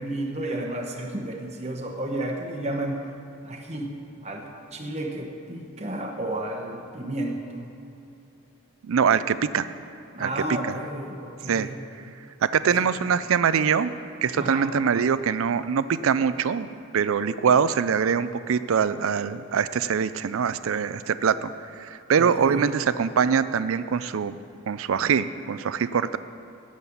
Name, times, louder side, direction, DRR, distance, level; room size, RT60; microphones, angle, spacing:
voice 1, 0.0-3.0 3.4-3.9 4.2-7.6 10.1-11.8 12.7-12.9 14.3-14.7 22.2-22.7, right 1 dB, 30° right, 1 dB, 1.0 m, -32 dB
voice 2, 8.8-9.7 10.2-10.8 11.5-11.7 12.4-13.9 14.2-16.7 16.9-24.4 24.7-26.2, right 6 dB, 65° right, 14 dB, 0.4 m, -23 dB
9.5 x 7.4 x 8.4 m, 2.7 s
head